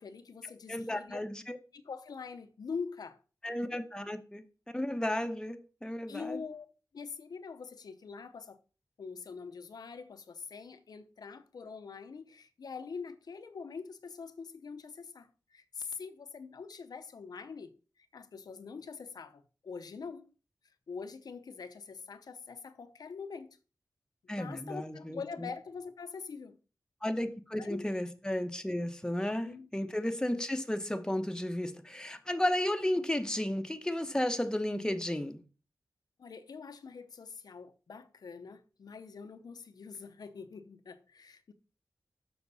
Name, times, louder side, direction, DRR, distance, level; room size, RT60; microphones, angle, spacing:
voice 1, 0.0-1.2 1.7-3.2 6.1-6.7 6.9-8.6 9.0-20.3 20.9-23.6 24.4-26.6 27.6-27.8 29.4-29.9 36.2-41.5, left 5 dB, 90° left, 0.7 m, -44 dB
voice 2, 0.7-1.6 3.4-4.4 4.7-6.4 24.3-25.5 27.0-35.4, left 1 dB, 10° left, 1.0 m, -33 dB
6.8 x 6.2 x 4.1 m
wide cardioid pair, 55°, 7 cm